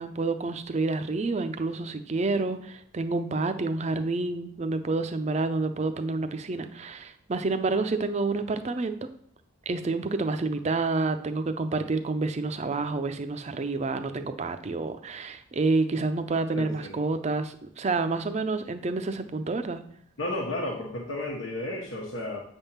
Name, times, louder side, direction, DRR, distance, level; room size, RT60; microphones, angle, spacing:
voice 1, 0.0-9.0 9.7-19.8, right 3 dB, 35° right, 9 dB, 0.5 m, -28 dB
voice 2, 16.5-17.0 20.2-22.4, left 1 dB, 90° left, -2 dB, 1.1 m, -32 dB
7.9 x 3.5 x 5.7 m, 0.65 s
head